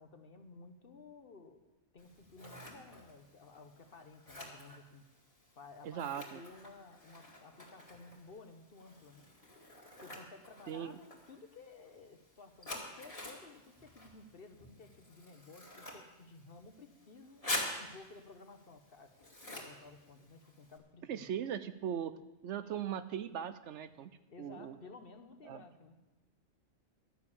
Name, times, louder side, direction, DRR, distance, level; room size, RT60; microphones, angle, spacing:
voice 1, 0.0-1.6 1.9-5.1 5.6-9.2 10.0-17.4 17.8-19.1 19.5-21.3 24.3-26.0, left 3 dB, 50° left, 7 dB, 1.2 m, -55 dB
Scissors, 2.0-20.8, left 1 dB, 25° left, 2.3 m, -47 dB
voice 2, 5.8-6.4 10.7-11.0 21.1-22.1 22.4-24.8 25.4-25.6, right 9 dB, 70° right, 13 dB, 0.9 m, -39 dB
12.5 x 6.8 x 8.5 m, 1.1 s
omnidirectional pair, 1.3 m